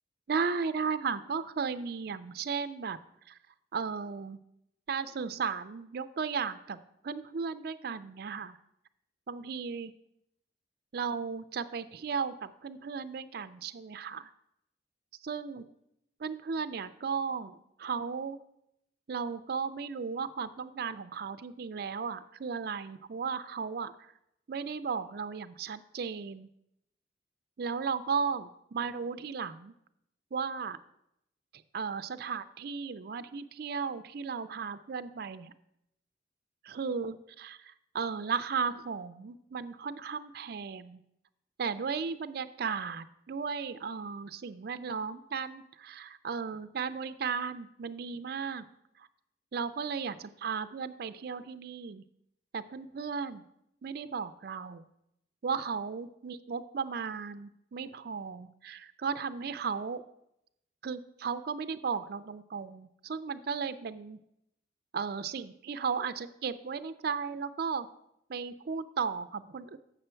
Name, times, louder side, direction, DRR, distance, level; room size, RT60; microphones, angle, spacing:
voice 1, 0.3-3.0 3.3-3.4 3.7-4.4 4.9-6.8 7.0-8.5 9.3-9.9 10.9-14.3 15.2-15.6 16.2-18.4 19.1-24.1 24.5-26.5 27.6-29.7 30.3-30.8 31.7-35.5 36.6-37.6 37.9-41.0 41.6-48.7 49.0-49.1 49.5-50.2 50.4-52.0 52.5-53.4 53.8-54.8 55.4-60.0 60.8-64.2 64.9-67.9 68.3-69.8, right 5 dB, 55° right, 12 dB, 0.4 m, -35 dB
7.8 x 6.1 x 4.4 m, 0.79 s
head